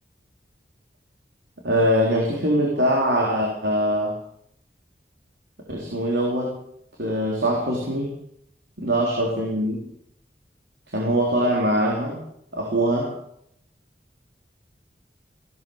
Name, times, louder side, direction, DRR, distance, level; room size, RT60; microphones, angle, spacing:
voice 1, 1.6-4.1 5.7-6.6 7.0-8.1 8.8-9.8 10.9-12.2 12.5-13.1, equal, 80° right, -1 dB, 3.7 m, -22 dB
16.5 x 12.0 x 7.2 m, 0.71 s
head